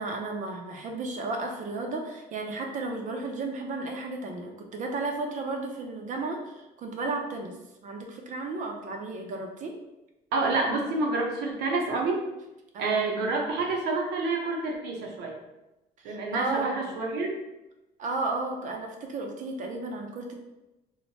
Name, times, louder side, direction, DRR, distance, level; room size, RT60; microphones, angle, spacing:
voice 1, 0.0-7.6 7.8-9.7 12.7-13.0 16.0-16.9 18.0-20.3, right 3 dB, 50° right, 2 dB, 0.5 m, -33 dB
voice 2, 10.3-12.3 12.8-15.3 16.0-17.4, right 3 dB, 85° right, 0 dB, 0.7 m, -28 dB
3.1 x 2.1 x 2.7 m, 0.97 s
cardioid pair, 110°, 17 cm